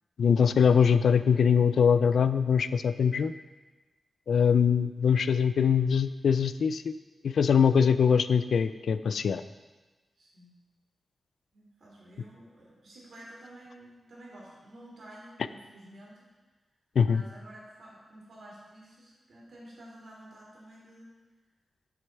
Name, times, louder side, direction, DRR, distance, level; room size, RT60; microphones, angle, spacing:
voice 1, 0.2-3.3 4.3-6.9 7.2-9.4 17.0-17.2, left 7 dB, 85° left, 13 dB, 0.3 m, -23 dB
voice 2, 10.2-10.5 11.5-16.3 17.0-21.1, right 1 dB, 60° right, -4 dB, 2.8 m, -50 dB
7.1 x 6.7 x 4.5 m, 1.2 s
wide cardioid pair, 165°, 0 cm